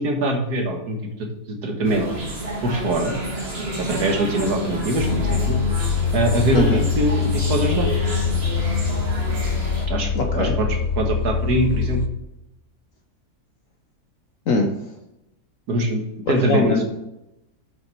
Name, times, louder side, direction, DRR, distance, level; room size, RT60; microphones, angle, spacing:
voice 1, 0.0-2.1 2.6-3.1 3.8-5.6 6.1-7.9 9.9-12.0 15.7-16.8, right 1 dB, 75° right, 3 dB, 1.9 m, -23 dB
sound 1, 1.8-9.9, right 1 dB, 40° right, 2.0 m, -29 dB
sound 2, 5.0-12.1, left 7 dB, 90° left, 0.4 m, -23 dB
voice 2, 10.1-10.5 14.5-14.9 16.3-16.8, left 3 dB, 60° left, 3 dB, 1.3 m, -22 dB
7.5 x 6.1 x 4.5 m, 0.89 s
omnidirectional pair, 1.7 m